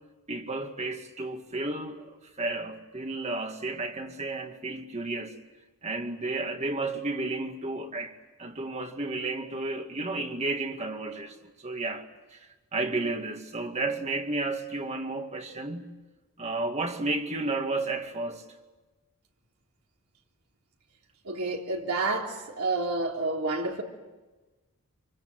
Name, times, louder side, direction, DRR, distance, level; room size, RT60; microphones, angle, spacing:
voice 1, 0.3-5.4 5.8-15.9 16.4-18.4, right 2 dB, 30° right, 2.2 m, -32 dB
voice 2, 21.3-23.8, right 3 dB, 75° right, 3.6 m, -29 dB
27.5 x 24.0 x 7.9 m
head